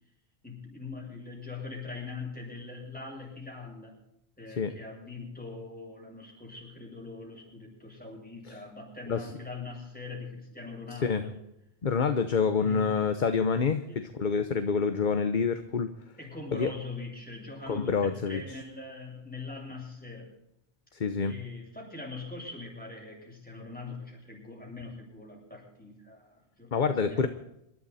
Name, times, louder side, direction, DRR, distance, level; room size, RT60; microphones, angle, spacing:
voice 1, 0.4-4.0 4.4-11.4 12.5-12.9 13.9-14.0 16.2-20.3 21.3-26.7 27.0-27.3, left 3 dB, 5° left, -2 dB, 7.6 m, -42 dB
voice 2, 11.8-15.9 16.5-16.7 17.7-18.4 21.0-21.3 26.7-27.3, left 5 dB, 45° left, 9 dB, 1.0 m, -27 dB
26.5 x 12.5 x 4.2 m, 0.81 s
omnidirectional pair, 1.2 m